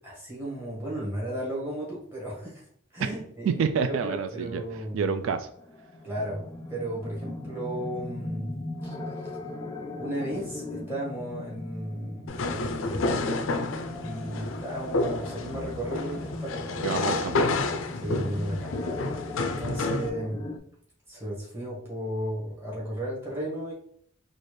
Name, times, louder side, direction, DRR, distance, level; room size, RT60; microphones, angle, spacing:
voice 1, 0.0-2.6 2.9-3.6 4.0-5.2 6.0-8.5 8.8-9.0 10.0-13.4 14.0-17.0 18.0-20.4 21.1-23.7, right 1 dB, 10° right, -6 dB, 1.4 m, -35 dB
voice 2, 3.5-4.6 4.9-5.5 16.8-17.4, right 6 dB, 85° right, 9 dB, 0.3 m, -28 dB
sound 1, 5.4-20.6, left 2 dB, 20° left, 0.3 m, -39 dB
sound 2, 12.3-20.1, left 3 dB, 85° left, 0.4 m, -30 dB
4.2 x 2.5 x 3.1 m, 0.64 s
head